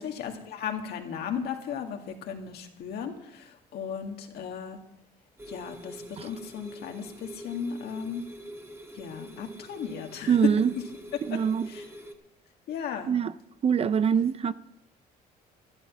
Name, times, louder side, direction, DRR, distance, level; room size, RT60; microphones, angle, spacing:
voice 1, 0.0-4.8 5.5-8.3 8.9-10.4 11.3-11.4 11.7-11.8 12.7-13.2, left 7 dB, 70° left, 2.0 m, -36 dB
sound 1, 5.4-12.1, right 1 dB, 15° right, 1.5 m, -45 dB
voice 2, 10.3-10.7 11.2-11.7 13.1-13.3 13.6-14.5, right 7 dB, 35° right, 0.5 m, -24 dB
12.0 x 11.5 x 6.0 m
cardioid pair, 110°, 17 cm